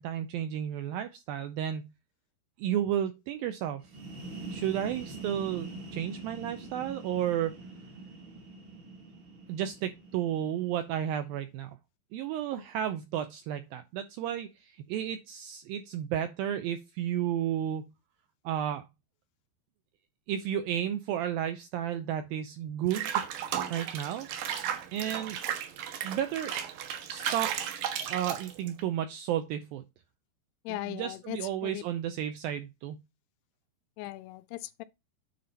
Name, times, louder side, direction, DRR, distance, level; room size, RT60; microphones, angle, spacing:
voice 1, 0.0-1.9 2.6-3.8 4.5-7.5 9.5-11.7 12.1-17.8 18.5-18.8 20.3-23.1 23.7-24.3 24.9-25.4 26.0-26.5 27.1-27.6 28.1-29.8 30.7-33.0, right 10 dB, 80° right, 2.1 m, -32 dB
sound 1, 3.8-11.4, right 3 dB, 50° right, 1.5 m, -44 dB
Water / Bathtub (filling or washing), 22.9-28.8, right 9 dB, 65° right, 2.6 m, -34 dB
voice 2, 30.7-31.8 34.0-34.8, left 18 dB, 85° left, 2.5 m, -38 dB
9.5 x 4.2 x 4.1 m
omnidirectional pair, 4.9 m